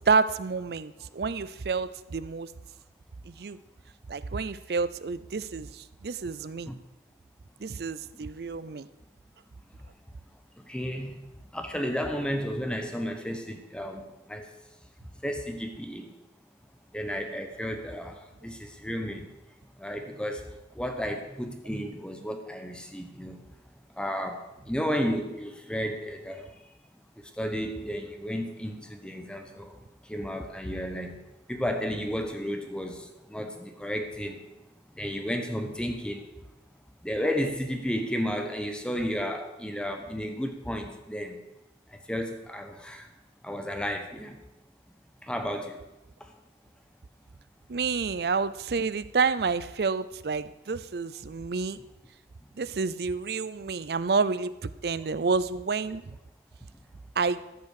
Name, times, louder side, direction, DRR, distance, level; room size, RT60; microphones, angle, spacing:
voice 1, 0.1-2.5 3.3-3.6 4.1-6.7 7.6-8.9 47.7-51.8 52.6-56.0 57.2-57.4, right 4 dB, 60° right, 16 dB, 0.5 m, -29 dB
voice 2, 10.7-11.2 11.5-14.4 15.2-16.1 16.9-19.3 19.8-20.5 20.7-23.4 24.0-26.5 27.4-29.7 30.1-31.2 31.5-34.4 35.0-36.2 37.0-41.4 42.1-43.1 43.4-44.4 45.2-45.8, equal, 5° left, 5 dB, 1.0 m, -32 dB
13.5 x 5.9 x 6.5 m, 0.96 s
head